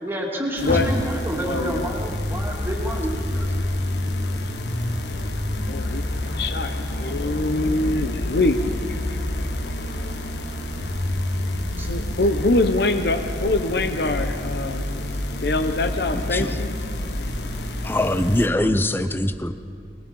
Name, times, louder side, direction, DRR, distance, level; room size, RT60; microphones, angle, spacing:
voice 1, 0.0-3.6 11.8-11.9, equal, 15° right, -1 dB, 2.7 m, -29 dB
sound 1, 0.6-18.5, left 1 dB, 80° left, 1.4 m, -32 dB
voice 2, 0.6-0.9 1.4-1.9 4.4-4.5 5.1-5.3 5.6-8.7 9.1-10.1 10.8-10.9 11.9-14.8 15.3-16.7, left 2 dB, 65° left, 8 dB, 0.8 m, -24 dB
sound 2, 0.7-18.7, left 1 dB, 40° left, 3.0 m, -30 dB
voice 3, 17.8-19.5, left 1 dB, 10° left, 11 dB, 0.6 m, -22 dB
23.5 x 21.0 x 5.5 m, 2.3 s
head